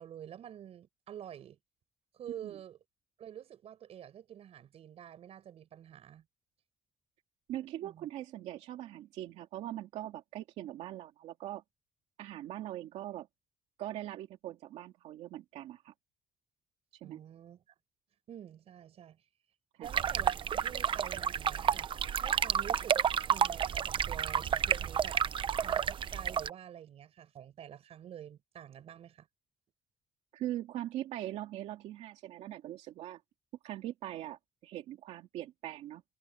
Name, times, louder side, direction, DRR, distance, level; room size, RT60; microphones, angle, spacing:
voice 1, 0.0-1.6 2.1-2.8 3.2-6.3 7.8-8.1 17.0-17.6 18.3-19.2 19.8-21.9 22.2-23.0 23.3-25.2 25.6-29.3, right 10 dB, 65° right, 5.2 m, -48 dB
voice 2, 7.5-11.6 12.2-13.3 13.8-15.9 17.0-17.2 19.8-19.9 30.3-33.2 33.6-36.0, right 13 dB, 90° right, 2.4 m, -41 dB
sound 1, 19.9-26.5, right 8 dB, 50° right, 0.8 m, -31 dB
cardioid pair, 100°, 11 cm